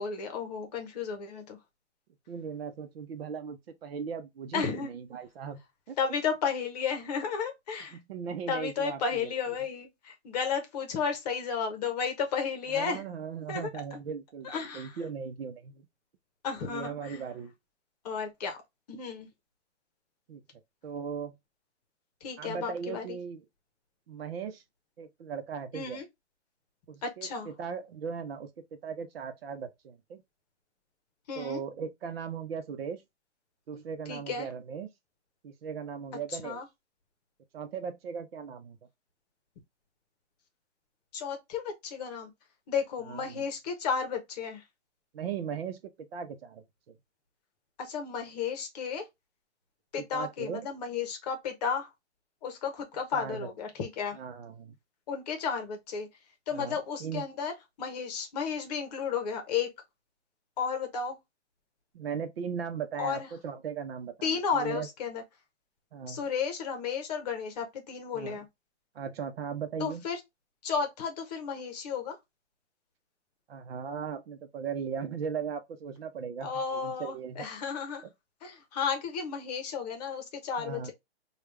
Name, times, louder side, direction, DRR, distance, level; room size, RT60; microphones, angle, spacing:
voice 1, 0.0-1.6 4.5-4.9 6.0-8.0 8.5-13.0 13.5-14.0 14.4-15.0 16.4-17.2 18.0-18.6 18.9-19.3 22.2-23.2 25.7-26.0 27.0-27.5 31.3-31.6 34.1-34.5 36.4-36.7 41.1-42.3 42.7-44.6 47.8-49.1 49.9-51.9 52.4-54.2 55.1-56.1 56.5-57.5 57.8-59.7 60.6-61.2 63.0-63.3 64.2-65.2 66.1-68.5 69.8-70.2 70.6-72.2 76.4-78.0 78.4-80.9, left 6 dB, 35° left, 0.9 m, -33 dB
voice 2, 2.3-5.6 5.9-6.0 7.9-9.3 12.7-15.9 16.6-17.5 20.3-20.4 20.8-21.4 22.4-23.4 24.1-24.6 25.0-26.0 26.9-30.2 31.4-33.0 33.7-34.9 35.4-36.6 37.5-38.8 43.1-43.4 45.1-46.9 50.0-50.7 53.1-53.5 54.1-54.8 56.5-57.2 61.9-64.9 65.9-66.2 68.1-68.4 68.9-70.0 73.5-77.4 80.6-80.9, right 6 dB, 55° right, 0.8 m, -38 dB
3.3 x 2.4 x 3.2 m
hypercardioid pair, 155°, 35 cm